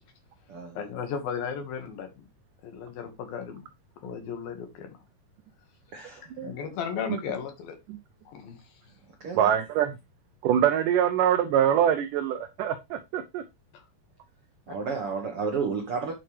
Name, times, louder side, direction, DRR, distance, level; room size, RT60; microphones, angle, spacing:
voice 1, 0.8-2.3 2.6-3.6 4.0-4.9 6.4-7.8 8.3-8.6 13.7-13.9, left 7 dB, 70° left, 3.4 m, -35 dB
voice 2, 5.9-6.3 9.2-9.5 14.7-16.1, right 5 dB, 65° right, 1.4 m, -31 dB
voice 3, 9.4-10.0 10.4-13.4, right 9 dB, 80° right, 1.8 m, -24 dB
9.0 x 7.6 x 3.3 m
omnidirectional pair, 4.6 m